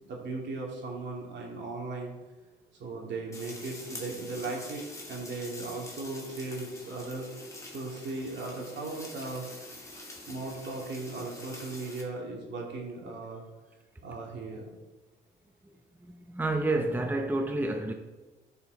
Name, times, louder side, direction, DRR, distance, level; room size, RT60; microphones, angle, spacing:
voice 1, 0.1-2.1 2.8-4.8 5.1-7.3 7.7-9.5 10.0-13.4 14.0-14.7, right 3 dB, 65° right, 2.5 m, -37 dB
sound 1, 3.3-12.0, left 2 dB, 15° left, 2.4 m, -46 dB
voice 2, 16.0-17.9, right 2 dB, 10° right, 0.8 m, -29 dB
12.5 x 5.6 x 4.0 m
cardioid pair, 90°, 20 cm